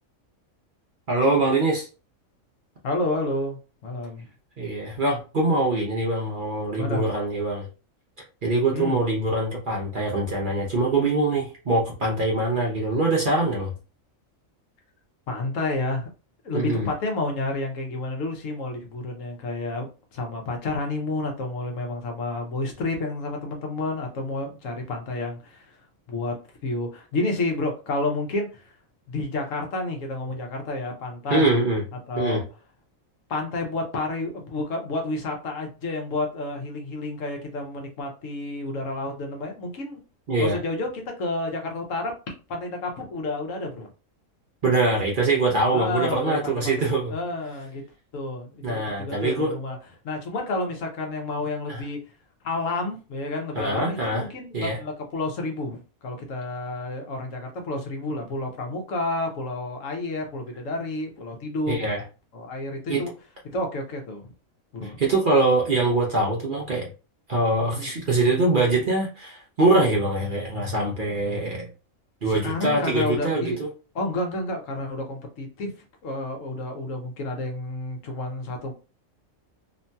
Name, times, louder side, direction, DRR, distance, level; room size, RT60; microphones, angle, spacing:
voice 1, 1.1-1.9 4.6-7.7 8.4-13.7 16.5-16.9 31.3-31.8 32.2-32.4 40.3-40.6 44.6-47.1 48.6-49.5 51.7-51.8 53.5-54.2 54.5-54.8 61.7-62.0 62.9-63.0 65.0-66.9 67.3-71.7 72.2-73.5, right 2 dB, 50° right, -2 dB, 0.7 m, -23 dB
voice 2, 2.8-4.3 6.8-7.1 8.7-9.0 15.3-16.1 16.4-25.8 26.1-28.7 29.1-31.5 32.1-32.4 33.3-40.0 40.4-42.1 42.5-43.9 45.7-46.7 47.1-47.8 48.1-49.8 50.0-52.0 52.4-61.9 62.3-63.1 63.4-64.3 64.7-65.0 67.7-67.9 72.2-73.6 73.9-75.7 76.0-78.7, left 2 dB, 70° left, 3 dB, 1.1 m, -30 dB
3.0 x 2.7 x 2.2 m, 0.32 s
omnidirectional pair, 1.4 m